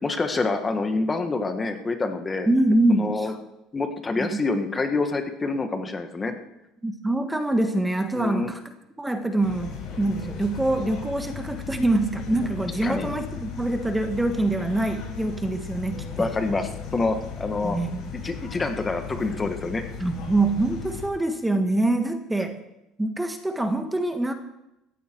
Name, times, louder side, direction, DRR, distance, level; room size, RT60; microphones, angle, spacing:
voice 1, 0.0-2.5 2.9-3.3 3.7-6.3 8.2-8.5 12.8-13.1 16.2-17.8 18.2-19.8, left 3 dB, 20° left, 7 dB, 1.6 m, -27 dB
voice 2, 2.5-3.3 4.2-4.3 6.8-8.6 9.0-16.3 17.6-18.0 20.0-22.6 23.0-24.3, right 2 dB, 10° right, 6 dB, 1.5 m, -25 dB
sound 1, 9.4-21.1, left 6 dB, 60° left, 6.9 m, -36 dB
18.0 x 15.0 x 4.7 m, 0.89 s
cardioid pair, 120°, 0 cm